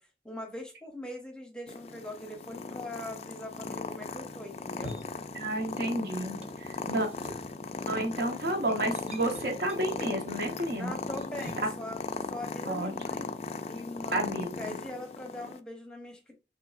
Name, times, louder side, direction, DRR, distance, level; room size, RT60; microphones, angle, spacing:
voice 1, 0.2-5.0 10.7-13.3 13.6-14.3 14.6-16.3, left 1 dB, 5° left, 3 dB, 0.8 m, -41 dB
Purr, 1.7-15.6, left 3 dB, 35° left, 0.3 m, -38 dB
sound 1, 4.6-6.0 6.2-11.8, right 1 dB, 35° right, 0.6 m, -48 dB
voice 2, 5.3-7.1 7.9-11.0 11.6-11.7 12.6-13.0 14.1-14.8, right 1 dB, 60° right, 3 dB, 1.1 m, -31 dB
4.6 x 3.4 x 2.5 m, 0.29 s
head